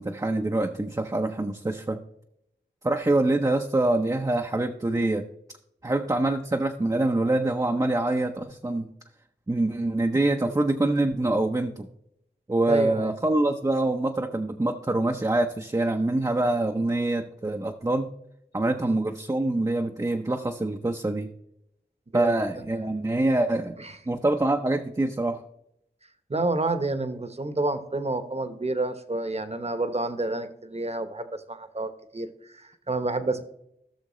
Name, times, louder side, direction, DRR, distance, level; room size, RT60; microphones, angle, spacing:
voice 1, 0.0-2.0 2.8-5.3 5.8-8.9 9.5-11.9 12.5-18.1 18.5-21.3 22.1-23.8 24.1-25.4, right 2 dB, 20° right, 3 dB, 0.6 m, -25 dB
voice 2, 12.7-13.1 18.8-19.0 22.1-22.3 23.8-24.0 26.3-33.4, right 2 dB, 35° right, 10 dB, 1.0 m, -29 dB
16.0 x 6.4 x 3.1 m, 0.78 s
wide cardioid pair, 55°, 18 cm